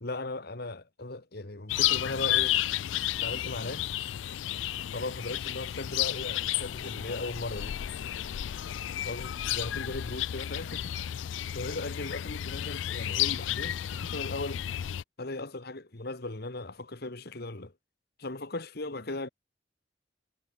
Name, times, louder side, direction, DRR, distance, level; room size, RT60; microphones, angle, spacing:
voice 1, 0.0-2.6 3.2-3.9 4.9-7.8 9.1-10.9 11.5-14.6 15.2-17.7 18.2-19.3, left 2 dB, 60° left, 1.9 m, -37 dB
sound 1, 1.7-15.0, left 12 dB, 90° left, 0.4 m, -32 dB
head